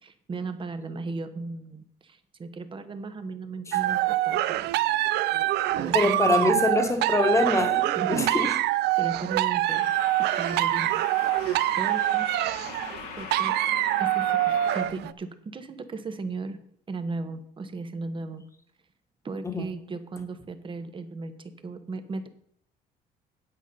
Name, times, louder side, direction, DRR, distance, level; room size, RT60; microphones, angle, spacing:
voice 1, 0.0-4.7 5.7-6.5 8.0-8.5 9.0-9.9 10.2-10.9 11.8-12.3 13.1-13.5 14.0-16.6 16.9-18.4 19.2-22.3, right 3 dB, 30° right, 9 dB, 1.2 m, -36 dB
sound 1, 3.7-15.1, right 15 dB, 80° right, 0.5 m, -25 dB
sound 2, 5.7-6.0 9.7-14.9, left 6 dB, 75° left, 1.6 m, -40 dB
voice 2, 5.9-8.6 19.4-19.7, left 2 dB, 15° left, 6 dB, 1.5 m, -24 dB
9.2 x 8.2 x 5.5 m, 0.66 s
cardioid pair, 110°, 17 cm